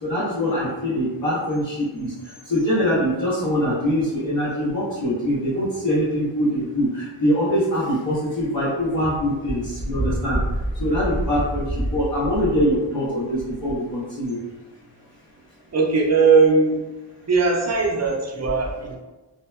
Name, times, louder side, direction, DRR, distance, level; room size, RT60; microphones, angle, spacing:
voice 1, 0.0-2.1 2.5-10.4 10.8-14.4, equal, 75° left, -10 dB, 0.9 m, -23 dB
voice 2, 15.7-16.8 17.2-18.9, right 4 dB, 40° right, -1 dB, 0.5 m, -19 dB
2.8 x 2.1 x 2.2 m, 1.1 s
wide cardioid pair, 110°, 44 cm